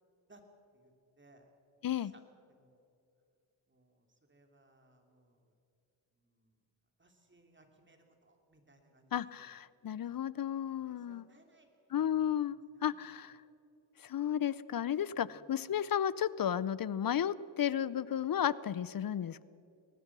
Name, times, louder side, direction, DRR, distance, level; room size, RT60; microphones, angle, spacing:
voice 1, 1.2-1.5 2.0-2.2 2.5-2.8 3.7-5.5 6.2-6.6 7.0-9.5 9.9-10.5 10.8-13.0 13.2-13.3 15.1-15.4, right 2 dB, 25° right, 4 dB, 3.4 m, -65 dB
voice 2, 9.1-11.2 11.9-13.4 14.0-19.4, left 9 dB, 45° left, 19 dB, 0.6 m, -33 dB
23.5 x 19.0 x 6.2 m, 2.6 s
cardioid pair, 90°, 49 cm